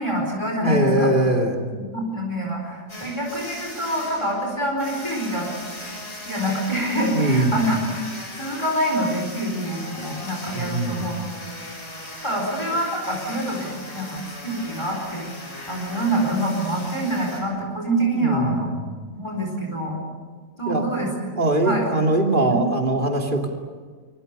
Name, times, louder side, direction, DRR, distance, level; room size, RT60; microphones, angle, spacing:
voice 1, 0.0-1.1 1.7-5.5 6.2-7.8 8.4-11.1 12.2-15.3 15.7-18.7 19.1-20.0 20.6-21.1 21.6-21.8 22.5-22.6, right 1 dB, 20° left, 0 dB, 4.7 m, -26 dB
voice 2, 0.6-1.6 7.1-7.6 10.5-11.2 18.1-18.8 20.7-21.0 21.4-23.5, right 1 dB, 40° right, 1 dB, 3.2 m, -22 dB
sound 1, 2.9-17.4, left 1 dB, 60° left, 6.0 m, -38 dB
25.5 x 23.5 x 6.9 m, 1.5 s
omnidirectional pair, 1.4 m